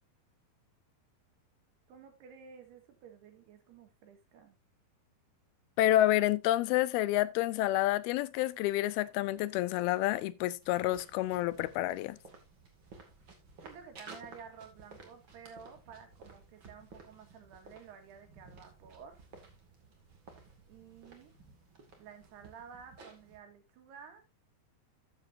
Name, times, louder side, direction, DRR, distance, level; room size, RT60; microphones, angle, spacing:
voice 1, 1.9-4.6 13.6-19.2 20.7-21.3 22.0-24.2, right 6 dB, 90° right, 3.8 m, -52 dB
voice 2, 5.8-12.2, left 14 dB, 80° left, 2.5 m, -29 dB
sound 1, 10.6-23.4, right 3 dB, 35° right, 2.4 m, -55 dB
13.5 x 7.6 x 2.7 m
omnidirectional pair, 4.5 m